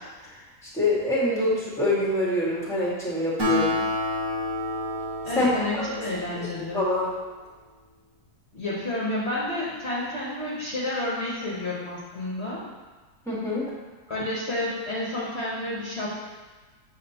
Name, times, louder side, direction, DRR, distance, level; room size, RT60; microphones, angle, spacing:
voice 1, 0.8-3.8 5.4-5.5 5.7-5.9 6.7-7.1 13.3-13.6, left 1 dB, ahead, -7 dB, 1.8 m, -25 dB
Acoustic guitar, 3.4-7.1, left 1 dB, 65° right, 1.9 m, -30 dB
voice 2, 5.2-6.8 8.5-12.6 14.1-16.2, left 1 dB, 45° left, -7 dB, 1.3 m, -30 dB
7.5 x 6.2 x 2.9 m, 1.3 s
omnidirectional pair, 1.7 m